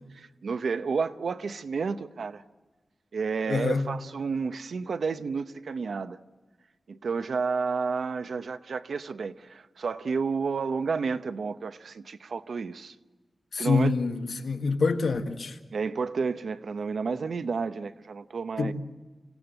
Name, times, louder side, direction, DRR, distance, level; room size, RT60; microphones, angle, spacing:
voice 1, 0.1-2.4 3.1-6.2 6.9-12.9 13.6-13.9 15.7-18.7, right 5 dB, 85° right, 0.8 m, -31 dB
voice 2, 3.5-3.9 13.5-15.6 18.6-18.7, left 4 dB, 80° left, 1.7 m, -26 dB
26.0 x 17.0 x 7.9 m
wide cardioid pair, 115°, 0 cm